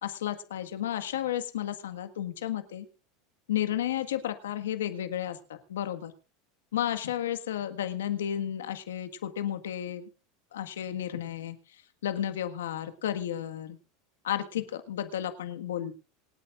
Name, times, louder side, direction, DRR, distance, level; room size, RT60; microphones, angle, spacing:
voice 1, 0.0-2.9 3.5-6.1 6.7-10.1 10.5-11.6 12.0-13.8 14.2-15.9, left 11 dB, 90° left, 8 dB, 1.7 m, -32 dB
26.5 x 8.9 x 2.5 m, 0.34 s
hypercardioid pair, 100°, 0 cm